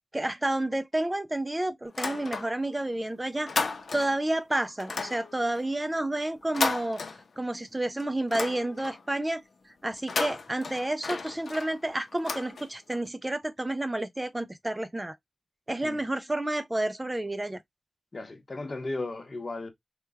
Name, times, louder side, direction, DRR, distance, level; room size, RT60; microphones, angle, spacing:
voice 1, 0.1-3.5 3.9-7.0 7.4-9.4 9.8-15.2 15.7-17.6, right 1 dB, 20° right, 0.4 m, -30 dB
sound 1, 1.9-2.8 3.1-4.3 4.8-7.6 8.0-9.1 9.9-13.0, left 4 dB, 75° left, 0.6 m, -34 dB
voice 2, 18.1-19.7, left 2 dB, 45° left, 0.8 m, -35 dB
3.2 x 2.2 x 3.4 m
wide cardioid pair, 95°, 0 cm